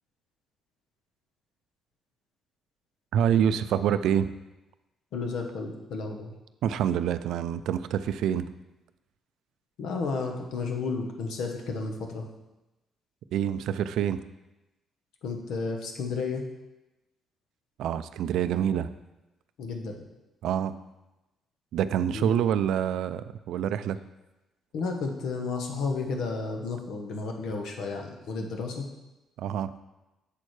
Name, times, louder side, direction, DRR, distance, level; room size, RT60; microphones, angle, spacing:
voice 1, 3.1-4.3 6.6-8.5 13.3-14.2 17.8-18.9 20.4-20.7 21.7-24.0 29.4-29.7, right 9 dB, 80° right, 13 dB, 0.3 m, -26 dB
voice 2, 5.1-6.3 9.8-12.2 15.2-16.4 19.6-20.0 22.1-22.3 24.7-28.9, left 4 dB, 80° left, 3 dB, 1.0 m, -32 dB
7.5 x 6.4 x 3.2 m, 1.0 s
cardioid pair, 90°, 0 cm